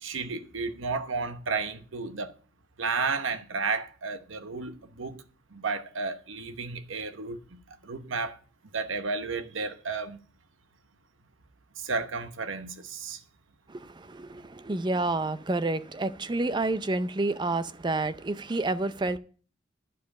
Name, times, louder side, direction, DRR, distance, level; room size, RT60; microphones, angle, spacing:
voice 1, 0.0-2.3 2.8-5.2 5.5-8.4 8.7-10.2 11.8-13.2, right 4 dB, 85° right, 1.0 m, -32 dB
voice 2, 13.7-19.2, right 2 dB, 25° right, 0.5 m, -29 dB
11.5 x 5.0 x 8.4 m
head